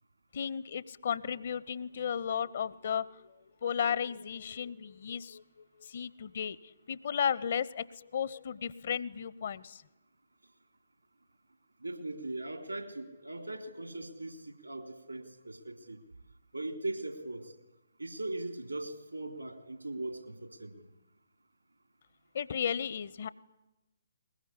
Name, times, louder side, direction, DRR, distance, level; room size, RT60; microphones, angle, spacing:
voice 1, 0.3-3.3 3.6-9.8 22.3-23.3, left 7 dB, 45° left, 19 dB, 0.8 m, -34 dB
voice 2, 11.8-16.0 16.5-17.5 18.0-20.9, right 2 dB, 80° right, 6 dB, 3.5 m, -40 dB
21.5 x 21.0 x 9.9 m, 0.99 s
figure-of-eight pair, 130°, 0 cm